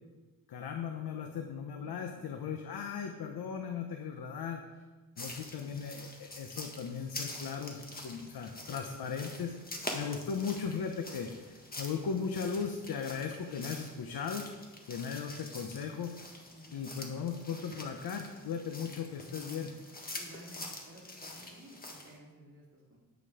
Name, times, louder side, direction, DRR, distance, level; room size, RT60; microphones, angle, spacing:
voice 1, 0.5-4.6 5.2-9.5 9.9-14.5 14.9-16.2 16.7-19.8, left 6 dB, 85° left, 4 dB, 1.0 m, -37 dB
voice 2, 1.8-2.3 8.8-9.0 16.5-17.1 20.1-23.0, right 1 dB, 35° right, -5 dB, 3.4 m, -54 dB
sound 1, 5.2-22.2, left 2 dB, 25° left, 1.6 m, -46 dB
10.5 x 8.9 x 5.0 m, 1.2 s
wide cardioid pair, 135°, 36 cm